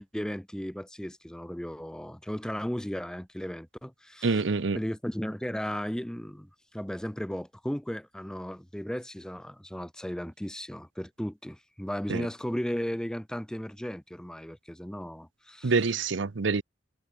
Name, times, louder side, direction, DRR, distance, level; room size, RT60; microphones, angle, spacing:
voice 1, 0.0-4.4 4.7-15.9, equal, 5° left, 0.6 m, -35 dB
voice 2, 4.2-4.8 12.1-12.3 15.6-16.6, right 4 dB, 80° right, 0.8 m, -26 dB
head